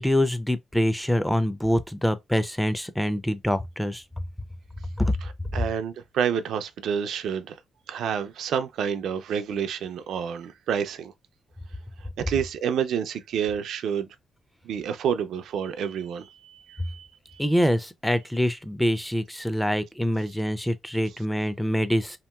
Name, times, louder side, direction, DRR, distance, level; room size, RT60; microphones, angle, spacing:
voice 1, 0.0-4.0 5.0-5.1 17.4-22.2, equal, 5° left, 0.4 m, -25 dB
voice 2, 5.2-7.6 7.9-11.1 12.2-14.1 14.6-17.4, right 8 dB, 85° right, 0.4 m, -29 dB
2.9 x 2.8 x 2.2 m
cardioid pair, 90°, 0 cm